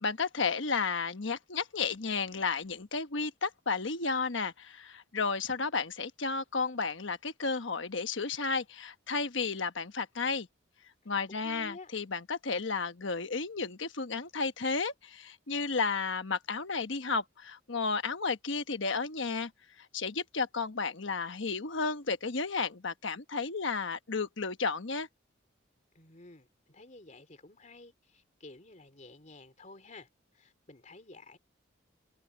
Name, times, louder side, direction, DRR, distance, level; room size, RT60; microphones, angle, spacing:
voice 1, 0.0-10.5 11.1-19.5 19.9-25.1, left 4 dB, 65° left, 1.2 m, -33 dB
voice 2, 11.3-11.9 25.9-30.1 30.3-31.4, left 2 dB, 35° left, 3.0 m, -51 dB
head